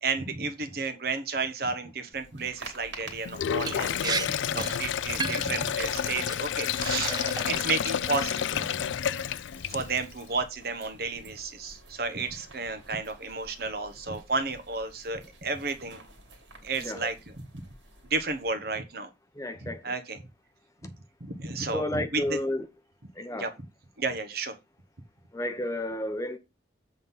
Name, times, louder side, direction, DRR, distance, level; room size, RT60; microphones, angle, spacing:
voice 1, 0.0-7.2 7.4-8.8 9.7-16.0 16.6-17.1 18.1-19.1 19.6-20.2 20.8-20.9 21.2-22.4 23.3-23.5 24.0-24.5, right 3 dB, 55° right, 1.1 m, -32 dB
sound 1, 2.1-18.5, right 2 dB, 80° right, 2.4 m, -49 dB
Sink (filling or washing), 3.2-10.1, left 9 dB, 80° left, 0.4 m, -30 dB
Liquid, 3.7-3.8 4.0-4.3 4.5-4.8 5.2-5.5 6.2-6.4 6.8-7.7 8.1-8.5, right 5 dB, 20° right, 0.4 m, -33 dB
voice 2, 16.7-17.1 19.3-20.0 21.7-22.7 23.1-23.5 25.3-26.4, left 1 dB, 15° left, 0.7 m, -32 dB
7.7 x 3.8 x 5.6 m
head